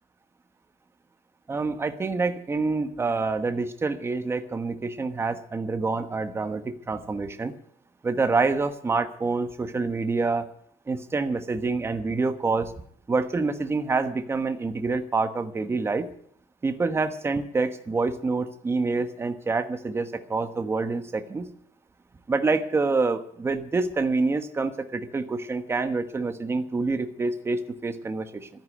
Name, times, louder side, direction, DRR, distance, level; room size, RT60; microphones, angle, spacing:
voice 1, 1.5-7.5 8.0-10.5 10.9-12.7 13.1-16.1 16.6-21.5 22.3-28.5, right 3 dB, 15° right, 9 dB, 1.2 m, -27 dB
13.5 x 10.5 x 9.2 m, 0.63 s
cardioid pair, 155°, 14 cm